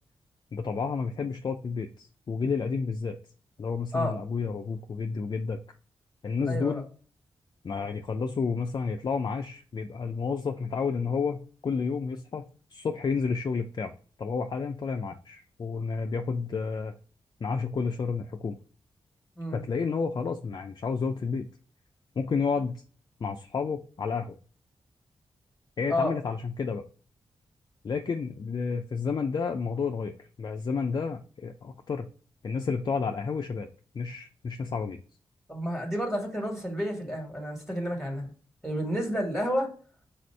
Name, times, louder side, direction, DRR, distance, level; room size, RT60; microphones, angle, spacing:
voice 1, 0.5-3.2 3.6-5.6 6.2-6.8 7.6-12.4 12.7-13.9 14.2-16.9 17.4-18.6 19.5-21.4 22.2-22.8 23.2-24.4 25.8-26.8 27.8-32.1 32.4-33.7 33.9-35.0, left 5 dB, 45° left, 0.4 m, -30 dB
voice 2, 6.5-6.8 19.4-19.6 25.9-26.1 35.5-38.3 38.6-39.7, equal, ahead, 1.4 m, -30 dB
4.0 x 2.6 x 4.3 m
cardioid pair, 75°, 10 cm